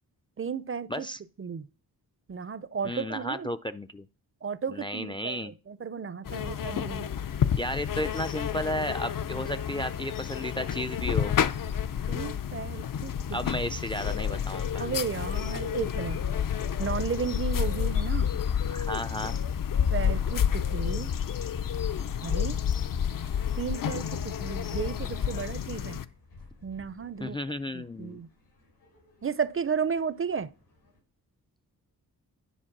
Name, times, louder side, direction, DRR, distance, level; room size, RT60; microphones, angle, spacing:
voice 1, 0.4-1.1 1.4-1.7 2.3-3.5 4.4-7.1 12.1-13.1 14.8-16.2 16.8-18.3 19.9-21.1 22.2-22.6 23.6-26.0 26.6-27.4 27.7-28.3 29.2-30.5, right 6 dB, 35° right, 0.5 m, -33 dB
voice 2, 0.9-1.2 2.8-4.1 4.7-5.5 7.6-11.4 13.3-14.9 18.7-19.4 27.2-28.2, equal, 15° left, 0.4 m, -33 dB
sound 1, 6.2-26.0, left 8 dB, 60° left, 0.6 m, -30 dB
sound 2, 17.4-31.0, left 3 dB, 90° left, 6.0 m, -54 dB
10.0 x 4.4 x 6.0 m
wide cardioid pair, 85°, 37 cm